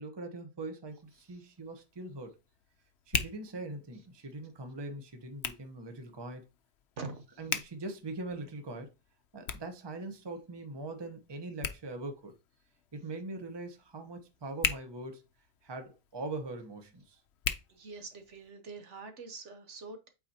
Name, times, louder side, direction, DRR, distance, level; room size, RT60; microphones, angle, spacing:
voice 1, 0.0-2.4 3.1-6.5 7.0-7.1 7.4-8.9 9.3-12.3 12.9-15.2 15.6-17.2, right 2 dB, 20° right, 0.9 m, -42 dB
Hands, 0.9-18.5, left 8 dB, 60° left, 0.8 m, -42 dB
voice 2, 17.7-20.1, right 4 dB, 65° right, 1.2 m, -44 dB
8.2 x 4.3 x 2.8 m
omnidirectional pair, 1.4 m